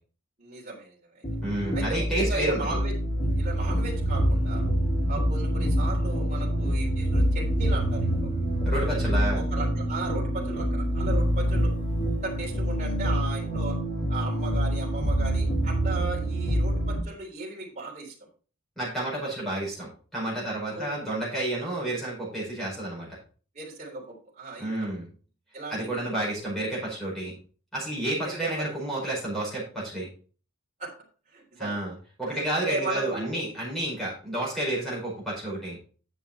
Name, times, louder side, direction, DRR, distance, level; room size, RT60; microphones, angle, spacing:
voice 1, 0.4-1.2 1.7-2.9 3.4-4.6 5.1-8.3 8.8-8.9 9.3-11.7 12.2-13.8 14.1-18.1 20.7-21.0 23.5-24.9 25.5-26.0 28.2-28.7 30.8-30.9 31.3-31.8 32.3-33.4, right 3 dB, 35° right, -4 dB, 3.4 m, -36 dB
sound 1, 1.2-17.0, equal, 35° left, 2.4 m, -26 dB
voice 2, 1.4-2.6 8.6-9.5 18.8-23.1 24.6-25.1 25.7-27.3 27.7-30.1 31.6-35.8, right 1 dB, ahead, -7 dB, 5.1 m, -30 dB
9.3 x 7.0 x 4.3 m, 0.38 s
head